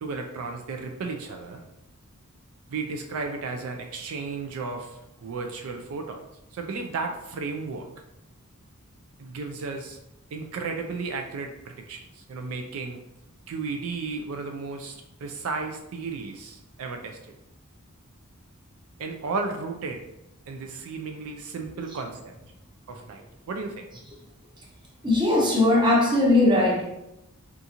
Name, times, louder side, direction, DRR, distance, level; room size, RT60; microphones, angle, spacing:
voice 1, 0.0-1.6 2.7-6.2 6.5-7.9 9.2-10.0 10.3-13.0 13.5-15.0 15.2-17.3 19.0-20.0 20.5-22.3 22.9-23.9, right 4 dB, 70° right, 4 dB, 0.4 m, -34 dB
voice 2, 25.0-26.8, left 2 dB, 20° right, -1 dB, 0.6 m, -19 dB
3.7 x 2.4 x 2.8 m, 0.88 s
head